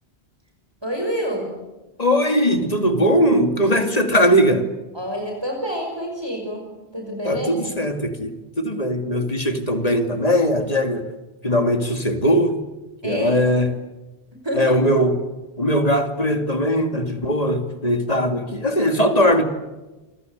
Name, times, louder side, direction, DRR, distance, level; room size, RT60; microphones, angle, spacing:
voice 1, 0.8-1.5 4.9-7.5 13.0-13.4 14.4-14.8, equal, 25° right, 1 dB, 5.6 m, -28 dB
voice 2, 2.0-4.7 7.2-11.1 11.4-12.6 13.0-13.7 14.5-15.2 15.6-19.4, equal, 35° left, 7 dB, 2.7 m, -20 dB
28.0 x 24.5 x 8.2 m, 1.1 s
omnidirectional pair, 1.1 m